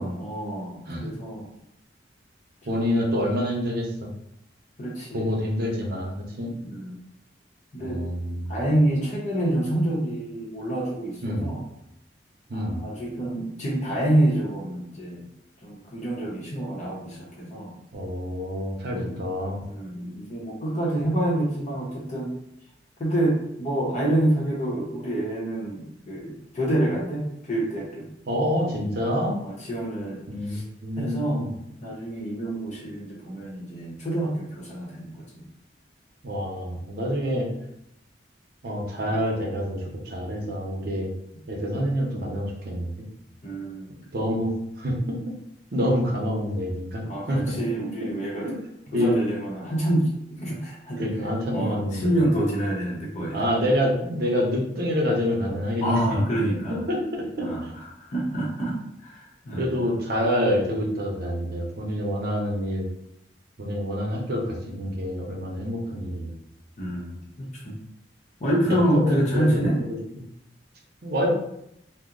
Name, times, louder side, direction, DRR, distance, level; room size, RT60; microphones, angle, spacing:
voice 1, 0.0-1.5 2.6-3.2 4.8-5.3 6.6-7.0 7.7-8.0 8.5-11.6 12.5-15.3 15.6-17.7 18.8-19.2 19.6-22.3 23.0-28.1 29.4-30.6 31.0-31.4 31.8-35.4 39.0-39.1 43.4-44.4 47.0-48.5 48.9-51.0 51.5-53.4 55.8-56.8 57.4-59.9 66.8-67.8 68.4-69.8, right 1 dB, 40° left, -4 dB, 0.7 m, -27 dB
voice 2, 2.6-4.1 5.1-6.5 7.8-8.6 11.2-11.5 12.5-12.8 17.9-19.6 21.0-21.1 28.3-29.3 30.3-31.5 36.2-37.5 38.6-41.1 41.5-43.1 44.1-44.5 44.8-45.3 45.7-47.7 48.0-48.1 48.4-48.6 48.9-49.2 51.0-52.2 53.3-56.0 56.9-57.7 59.5-62.9 63.6-66.3 68.6-69.6 70.2-70.3 71.0-71.3, equal, 60° right, -1 dB, 0.7 m, -27 dB
2.7 x 2.0 x 3.7 m, 0.79 s
head